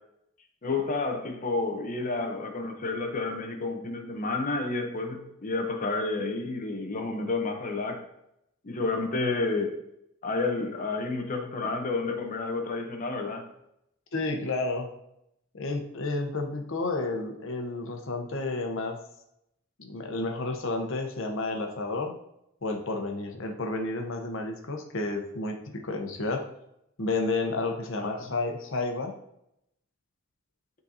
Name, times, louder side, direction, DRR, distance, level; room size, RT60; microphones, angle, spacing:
voice 1, 0.6-8.0 8.6-9.8 10.2-13.5 28.0-28.2, left 3 dB, 40° left, 0.9 m, -30 dB
voice 2, 14.1-14.9 15.5-19.0 19.8-22.1 22.6-26.4 27.0-29.2, left 2 dB, 65° left, 0.9 m, -31 dB
11.0 x 4.0 x 2.8 m
head